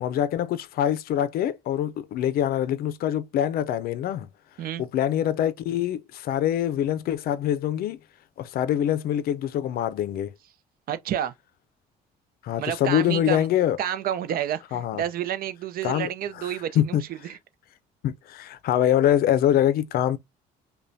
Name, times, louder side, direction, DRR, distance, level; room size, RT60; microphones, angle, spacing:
voice 1, 0.0-4.3 4.8-8.0 8.4-10.3 12.4-13.8 14.7-15.0 15.8-16.1 16.4-17.0 18.0-20.2, left 11 dB, 65° left, 0.5 m, -24 dB
voice 2, 10.9-11.3 12.6-13.5 13.8-17.4, right 10 dB, 60° right, 0.6 m, -30 dB
5.4 x 2.2 x 2.6 m
cardioid pair, 110°, 17 cm